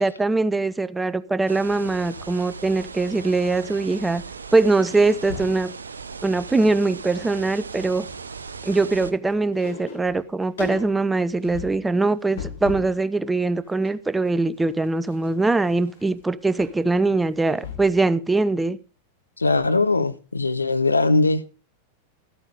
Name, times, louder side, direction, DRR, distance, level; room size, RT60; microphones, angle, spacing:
voice 1, 0.0-4.2 4.5-5.7 6.2-8.1 8.6-18.8, right 3 dB, 10° right, 0.5 m, -22 dB
sound 1, 1.5-9.1, right 5 dB, 75° right, 0.6 m, -38 dB
sound 2, 1.8-4.0 4.3-4.5 4.8-5.6 6.2-6.8 7.1-13.0 13.4-18.1 18.4-18.5, left 5 dB, 65° left, 2.9 m, -39 dB
voice 2, 19.4-21.4, left 3 dB, 80° left, 0.7 m, -20 dB
13.0 x 8.8 x 4.9 m
figure-of-eight pair, 90°, 0 cm